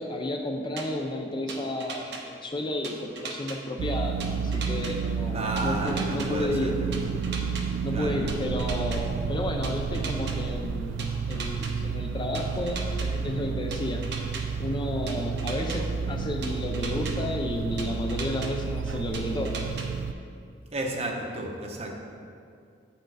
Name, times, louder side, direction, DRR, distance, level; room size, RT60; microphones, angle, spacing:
voice 1, 0.0-6.8 7.8-14.1 14.6-19.6, left 1 dB, 25° left, 3 dB, 0.4 m, -32 dB
sound 1, 0.8-0.9 1.5-2.2 2.8-3.6 4.2-4.9 5.6-6.3 6.9-7.6 8.3-9.0 9.6-10.3 11.0-11.7 12.3-13.1 13.7-14.4 15.1-15.8 16.4-17.1 17.8-18.5 19.1-19.9, right 5 dB, 65° right, 0.8 m, -37 dB
sound 2, 3.8-20.1, right 6 dB, 85° right, 0.3 m, -31 dB
voice 2, 5.3-6.7 7.9-8.2 20.7-21.9, right 1 dB, 35° right, 1 dB, 0.8 m, -32 dB
7.7 x 4.5 x 4.7 m, 2.4 s
head